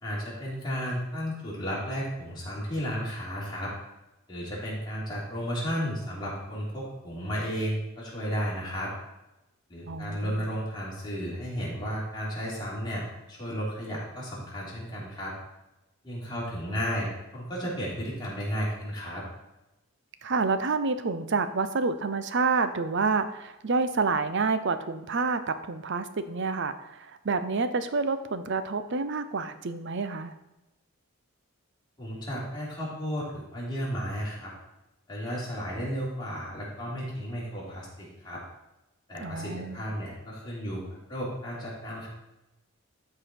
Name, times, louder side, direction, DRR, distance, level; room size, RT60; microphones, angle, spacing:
voice 1, 0.0-3.7 4.3-8.9 9.7-15.3 16.0-17.1 17.3-19.2 32.0-34.5 35.1-38.4 39.1-42.1, equal, 20° left, -7 dB, 3.5 m, -33 dB
voice 2, 9.9-10.4 20.2-30.3 39.2-39.8, right 4 dB, 55° right, 11 dB, 0.6 m, -28 dB
13.0 x 4.8 x 4.4 m, 0.97 s
head